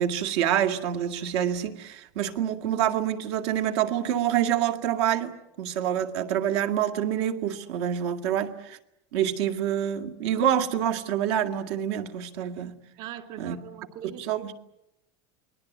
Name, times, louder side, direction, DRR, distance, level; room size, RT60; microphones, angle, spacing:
voice 1, 0.0-8.8 9.1-12.8 13.4-13.6 14.2-14.5, right 10 dB, 65° right, 2.2 m, -27 dB
voice 2, 13.0-14.5, right 10 dB, 40° right, 2.8 m, -41 dB
29.0 x 21.0 x 9.4 m
supercardioid pair, 175°, 14 cm